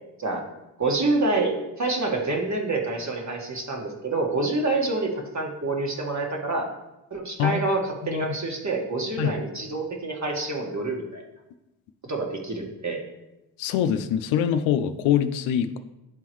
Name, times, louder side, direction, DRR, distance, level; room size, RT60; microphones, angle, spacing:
voice 1, 0.8-6.7 7.1-11.2 12.0-13.0, right 2 dB, 40° right, 1 dB, 1.6 m, -27 dB
voice 2, 13.6-15.8, left 9 dB, 85° left, 11 dB, 0.5 m, -24 dB
10.5 x 3.8 x 3.1 m, 0.96 s
supercardioid pair, 50°, 46 cm